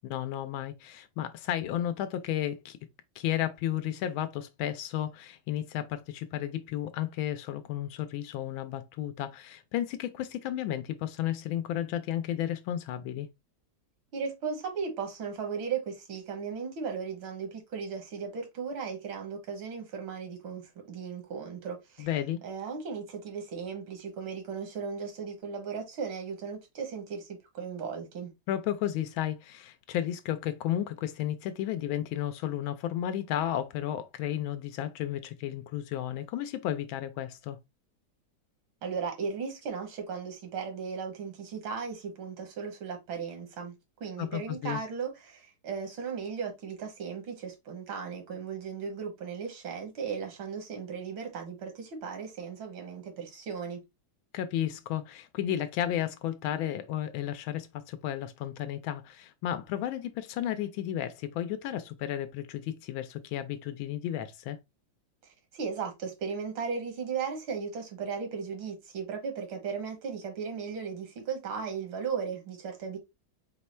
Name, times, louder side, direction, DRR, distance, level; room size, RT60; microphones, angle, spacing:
voice 1, 0.0-2.8 3.2-13.3 22.0-22.4 28.5-37.6 44.2-44.8 54.3-64.6, left 11 dB, 90° left, 1.4 m, -33 dB
voice 2, 14.1-22.1 22.4-28.3 38.8-43.7 44.0-53.8 65.5-73.0, right 6 dB, 80° right, 1.8 m, -36 dB
4.8 x 2.2 x 4.2 m
omnidirectional pair, 2.1 m